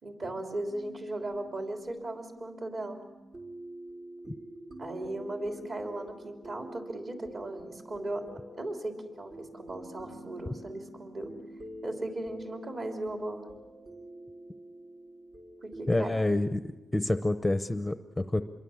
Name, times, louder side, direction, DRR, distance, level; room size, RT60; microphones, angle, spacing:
voice 1, 0.0-3.0 4.8-8.3 8.6-11.3 11.8-13.5 15.6-16.1, right 1 dB, 45° right, 3 dB, 3.4 m, -37 dB
sound 1, 0.7-16.2, right 1 dB, 65° right, 4.4 m, -47 dB
voice 2, 15.9-16.6 16.9-18.4, left 1 dB, 10° left, 10 dB, 0.7 m, -28 dB
26.5 x 22.5 x 7.2 m, 1.1 s
wide cardioid pair, 125°, 0 cm